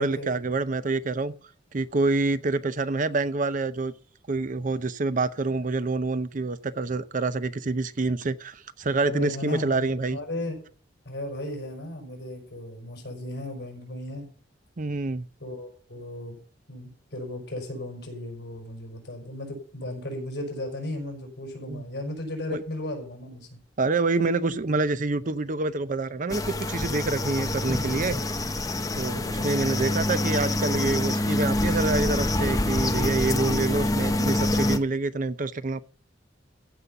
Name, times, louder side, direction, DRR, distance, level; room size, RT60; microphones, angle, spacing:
voice 1, 0.0-1.3 1.7-3.9 4.3-10.2 14.8-15.2 21.7-21.9 22.5-22.6 23.8-28.2 28.9-35.8, right 3 dB, 45° right, 0.7 m, -27 dB
voice 2, 9.0-10.6 11.1-14.3 15.4-16.4 16.7-23.6 29.2-29.6, left 1 dB, 60° left, 5.5 m, -35 dB
sound 1, 26.3-34.8, left 1 dB, 20° left, 0.9 m, -26 dB
15.0 x 5.7 x 6.7 m
head